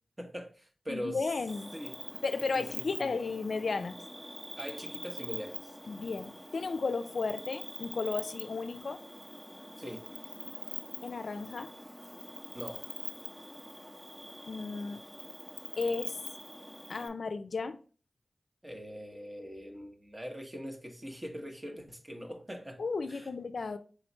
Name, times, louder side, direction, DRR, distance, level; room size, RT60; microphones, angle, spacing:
voice 1, 0.2-1.3 1.7-1.9 2.5-2.7 3.0-3.1 4.6-5.8 9.8-10.1 12.5-12.8 18.6-22.8 23.1-23.3, equal, 30° right, 1.2 m, -42 dB
voice 2, 0.9-1.7 2.2-4.0 5.9-9.0 11.0-11.7 14.5-15.0 15.8-16.2 16.9-17.8 22.8-23.8, left 4 dB, 80° left, 0.3 m, -34 dB
Cricket, 1.5-17.1, equal, 5° right, 0.9 m, -44 dB
4.9 x 3.1 x 3.0 m
cardioid pair, 40°, 0 cm